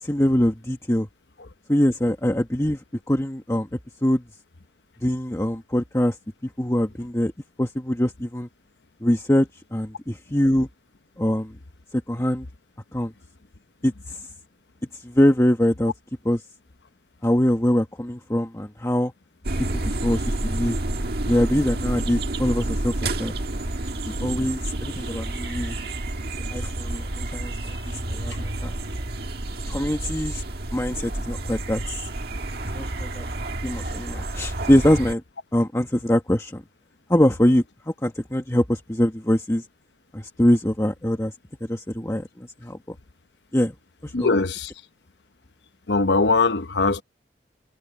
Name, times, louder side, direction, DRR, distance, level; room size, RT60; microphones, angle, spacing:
voice 1, 0.0-1.1 1.7-4.2 5.0-6.2 6.4-7.3 7.6-8.5 9.0-10.7 11.2-11.6 11.9-12.5 12.9-13.1 13.8-14.2 14.9-15.9 16.2-16.4 17.2-19.1 19.6-20.8 21.3-23.3 24.0-25.8 26.5-28.7 29.7-30.4 30.7-32.1 32.7-33.3 33.6-35.2 35.5-36.6 37.1-39.6 40.1-41.3 41.6-42.9 43.5-43.7 44.0-44.3, left 1 dB, 15° left, 1.3 m, -23 dB
sound 1, 19.4-35.1, right 1 dB, 60° right, 1.7 m, -29 dB
voice 2, 44.1-44.7 45.9-47.0, left 3 dB, 70° left, 0.9 m, -21 dB
head